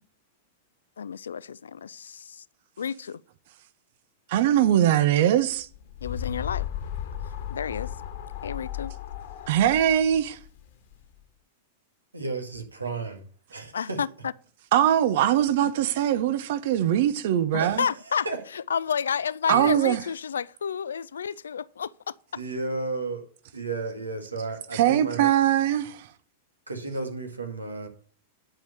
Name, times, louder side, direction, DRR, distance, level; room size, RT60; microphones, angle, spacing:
voice 1, 1.0-2.4 2.8-3.2 6.0-6.7 7.5-7.9 8.4-8.9 13.7-14.3 16.8-17.0 17.5-18.3 18.5-22.1, left 7 dB, 75° left, 0.4 m, -31 dB
voice 2, 4.3-5.7 9.5-10.4 14.7-17.8 19.5-20.0 24.7-26.1, right 11 dB, 60° right, 0.8 m, -22 dB
sound 1, 5.5-11.1, left 10 dB, 60° left, 1.5 m, -35 dB
voice 3, 12.1-13.2 13.5-14.0 17.6-17.9 18.3-18.4 19.5-19.6 22.3-23.3 23.5-25.3 26.7-27.9, right 3 dB, 90° right, 2.0 m, -33 dB
10.5 x 4.8 x 6.9 m
figure-of-eight pair, 95°, 0 cm